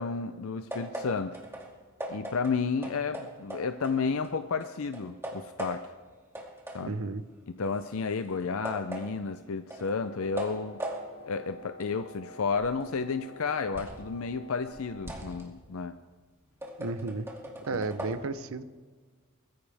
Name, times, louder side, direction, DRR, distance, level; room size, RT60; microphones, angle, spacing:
voice 1, 0.0-1.4 2.1-5.9 6.7-7.0 7.5-10.8 11.3-16.0 17.7-17.8, left 5 dB, 65° left, 9 dB, 0.5 m, -32 dB
sound 1, 0.7-4.3 4.6-6.1 6.3-14.1 14.5-18.1, right 1 dB, 10° right, 2.3 m, -41 dB
voice 2, 6.8-7.2 16.8-17.3 17.7-18.6, right 3 dB, 65° right, 13 dB, 0.7 m, -33 dB
Wind instrument woodwind instrument, 9.9-15.2, left 1 dB, 80° left, 4.5 m, -49 dB
22.0 x 14.5 x 3.5 m, 1.4 s
head